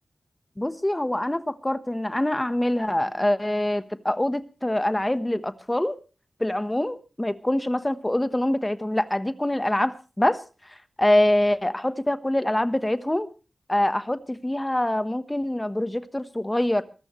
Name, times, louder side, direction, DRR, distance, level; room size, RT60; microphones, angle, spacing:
voice 1, 0.6-6.0 6.4-10.4 10.7-13.3 13.7-16.8, left 1 dB, 15° left, 1.2 m, -25 dB
23.0 x 13.5 x 3.2 m
wide cardioid pair, 65°, 0 cm